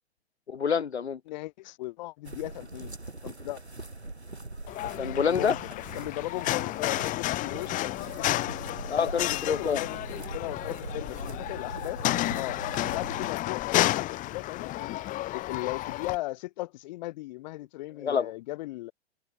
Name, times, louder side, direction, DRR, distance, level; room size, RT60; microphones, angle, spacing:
voice 1, 0.5-1.2 5.0-5.6 8.9-9.8 18.0-18.3, left 7 dB, 85° left, 0.6 m, -27 dB
voice 2, 1.3-2.9 3.2-3.6 5.3-8.3 9.0-12.0 12.3-12.6 12.9-15.0 15.3-18.9, left 18 dB, 45° left, 4.2 m, -37 dB
sound 1, 2.2-13.3, right 2 dB, 90° right, 4.3 m, -42 dB
sound 2, 4.7-16.2, left 16 dB, 25° left, 1.8 m, -31 dB
figure-of-eight pair, 110°, 32 cm